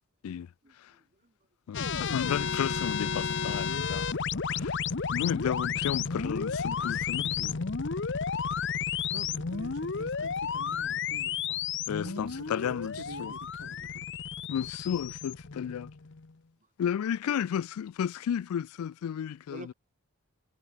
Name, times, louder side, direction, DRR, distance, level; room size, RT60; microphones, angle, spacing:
voice 1, 0.6-1.3 6.7-6.9 7.7-7.9 8.5-8.7 15.6-15.7 19.5-19.7, right 1 dB, 35° right, 2.6 m, -50 dB
voice 2, 1.7-4.1 4.5-4.7 5.1-7.6 11.9-12.9 13.2-13.3 14.5-15.9 16.8-19.7, left 8 dB, 80° left, 0.3 m, -33 dB
sound 1, 1.7-16.3, left 6 dB, 55° left, 0.8 m, -32 dB
voice 3, 8.9-11.7 12.0-14.1, right 3 dB, 90° right, 1.3 m, -47 dB
head